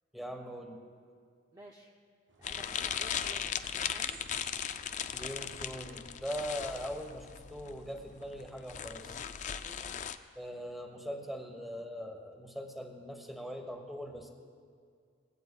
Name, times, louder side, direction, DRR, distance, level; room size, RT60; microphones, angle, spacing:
voice 1, 0.1-0.8 5.1-9.2 10.3-14.3, equal, ahead, 3 dB, 1.1 m, -41 dB
voice 2, 1.5-1.9 2.4-4.2 9.6-9.9, right 1 dB, 20° right, 0 dB, 0.6 m, -53 dB
sound 1, 2.3-8.6, right 3 dB, 80° right, 1.4 m, -60 dB
sound 2, 2.4-10.2, left 8 dB, 40° left, 0.4 m, -38 dB
20.0 x 16.5 x 2.3 m, 2.2 s
head